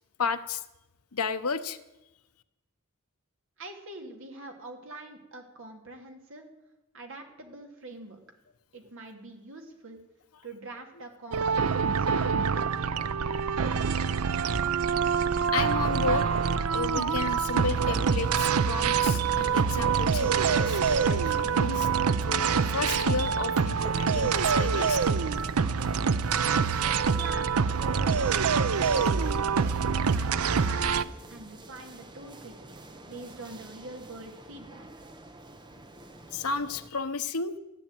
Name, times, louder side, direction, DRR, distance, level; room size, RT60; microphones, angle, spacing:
voice 1, 0.2-0.6 1.1-1.8 15.5-16.3 16.7-21.9 22.2-25.0 36.3-37.6, left 4 dB, 90° left, 9 dB, 1.0 m, -32 dB
voice 2, 3.6-6.4 6.9-8.2 8.7-10.0 10.4-11.7 12.1-12.8 26.8-28.3 28.5-34.9, right 2 dB, 60° right, 3 dB, 2.8 m, -44 dB
sound 1, 11.3-31.0, right 6 dB, 85° right, 0.6 m, -25 dB
sound 2, 17.5-36.9, right 2 dB, 20° right, 1.1 m, -48 dB
15.0 x 10.0 x 9.0 m, 0.99 s
head